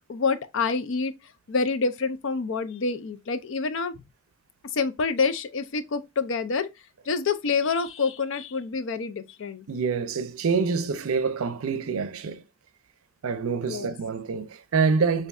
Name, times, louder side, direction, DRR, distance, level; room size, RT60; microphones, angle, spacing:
voice 1, 0.1-1.1 1.5-3.9 4.7-6.7 7.1-9.6 13.6-14.0, left 4 dB, 60° left, 0.5 m, -27 dB
voice 2, 9.7-12.4 13.2-15.3, right 5 dB, 80° right, 0.5 m, -26 dB
5.2 x 2.6 x 2.3 m
head